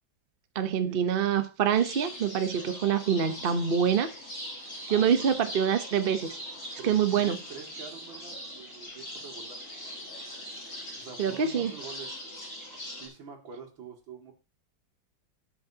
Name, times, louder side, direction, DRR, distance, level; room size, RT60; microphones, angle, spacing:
voice 1, 0.5-4.1 4.9-6.4 6.8-7.4 11.2-11.7, right 8 dB, 45° right, 0.7 m, -25 dB
sound 1, 1.7-13.1, equal, 35° left, 4.8 m, -41 dB
voice 2, 4.9-5.3 6.8-9.6 11.0-12.2 13.0-14.3, right 6 dB, 85° right, 3.0 m, -45 dB
18.5 x 6.3 x 2.8 m
omnidirectional pair, 2.1 m